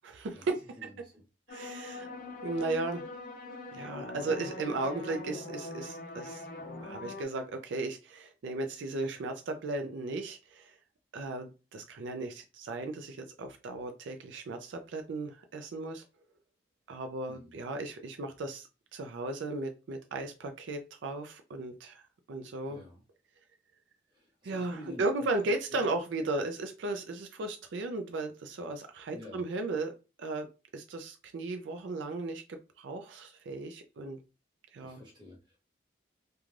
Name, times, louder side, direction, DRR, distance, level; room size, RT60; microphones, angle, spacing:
voice 1, 0.0-0.6 1.5-2.1 2.4-3.1 3.7-6.5 6.8-10.8 11.1-16.0 16.9-22.0 22.3-22.8 24.4-30.5 30.7-34.2 34.7-35.0, right 2 dB, 80° right, 5 dB, 0.4 m, -36 dB
voice 2, 0.8-1.2 17.3-17.6 22.7-23.0 24.1-25.9 29.1-29.5 34.8-35.6, left 1 dB, 25° right, -2 dB, 1.0 m, -50 dB
sound 1, 1.5-7.2, left 2 dB, 45° left, 0.4 m, -42 dB
2.4 x 2.2 x 3.1 m, 0.30 s
head